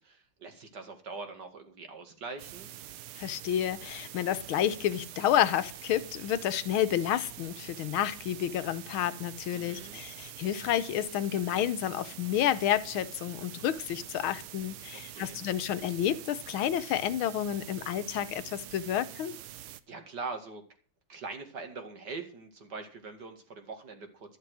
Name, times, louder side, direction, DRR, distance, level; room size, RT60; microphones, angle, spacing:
voice 1, 0.0-2.7 9.5-10.0 14.9-15.4 19.9-20.6 21.1-24.4, right 4 dB, 50° right, 2.5 m, -42 dB
sound 1, 2.4-19.8, right 12 dB, 80° right, 1.6 m, -46 dB
voice 2, 3.2-19.4, left 11 dB, 75° left, 1.7 m, -30 dB
12.5 x 10.5 x 6.3 m
omnidirectional pair, 2.3 m